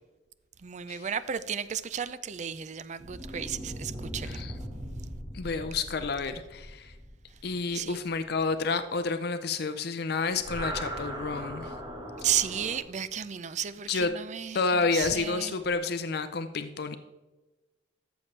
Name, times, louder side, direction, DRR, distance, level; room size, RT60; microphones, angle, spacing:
voice 1, 0.6-4.4 7.7-8.0 12.2-15.6, right 8 dB, 40° right, 0.4 m, -33 dB
sound 1, 3.0-8.6 10.3-12.8, equal, 25° right, 1.4 m, -39 dB
voice 2, 5.3-6.9 7.4-11.7 13.9-14.1 14.5-17.0, left 4 dB, 60° left, 0.5 m, -30 dB
14.0 x 7.0 x 3.2 m
head